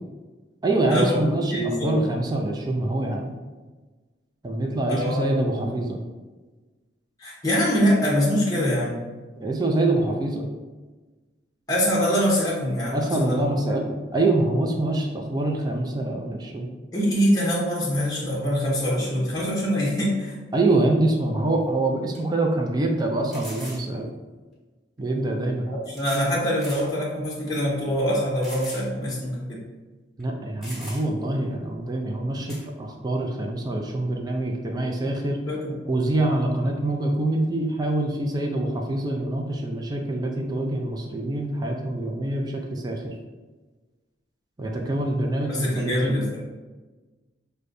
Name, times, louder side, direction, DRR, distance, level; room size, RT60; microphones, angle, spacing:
voice 1, 0.6-3.3 4.4-6.0 9.4-10.5 12.9-16.7 20.5-24.1 25.0-25.7 30.2-35.4 35.9-43.1 44.6-46.4, right 2 dB, 20° right, 1 dB, 0.4 m, -25 dB
voice 2, 1.5-2.0 4.9-5.7 7.2-9.0 11.7-13.4 16.9-20.3 25.7-29.6 35.5-35.7 45.5-46.4, equal, 20° left, -5 dB, 0.8 m, -24 dB
sound 1, 21.5-21.6 22.1-22.2 23.3-23.9 25.0-25.1 26.0-26.3 26.6-26.9 27.4-27.5 28.4-28.9 29.2-29.3 30.2-30.3 30.6-31.2 32.5-32.7, equal, ahead, 1.3 m, -40 dB
6.3 x 2.2 x 2.5 m, 1.3 s
head